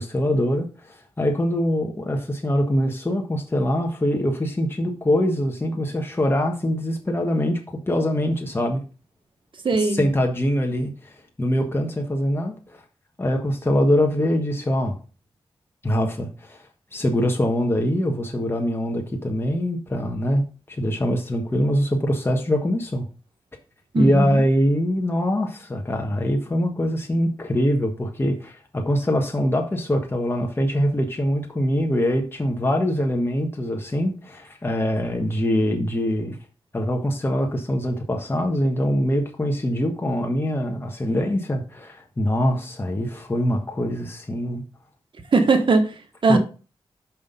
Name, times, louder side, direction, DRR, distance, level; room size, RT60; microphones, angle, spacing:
voice 1, 0.0-8.8 10.0-12.8 13.2-15.0 15.8-16.6 16.9-23.1 23.9-36.4 36.7-44.6 46.3-46.4, equal, 25° left, 1.4 m, -23 dB
voice 2, 9.6-10.1 23.9-24.4 45.3-46.4, right 3 dB, 60° right, 1.4 m, -20 dB
6.0 x 5.3 x 5.3 m
cardioid pair, 65°, 10 cm